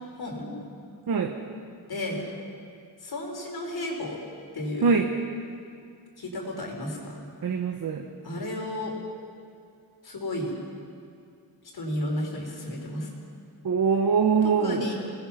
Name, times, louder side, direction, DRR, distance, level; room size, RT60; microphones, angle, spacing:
voice 1, 0.2-0.5 1.9-2.2 3.0-4.2 4.5-4.9 6.2-7.2 8.2-8.9 10.0-10.5 11.7-13.1 14.6-14.9, left 1 dB, 60° left, -1 dB, 4.5 m, -32 dB
voice 2, 1.1-1.4 4.8-5.1 7.4-8.1 13.6-14.9, right 5 dB, 50° right, 4 dB, 1.2 m, -23 dB
27.5 x 19.0 x 5.8 m, 2.4 s
wide cardioid pair, 175°, 43 cm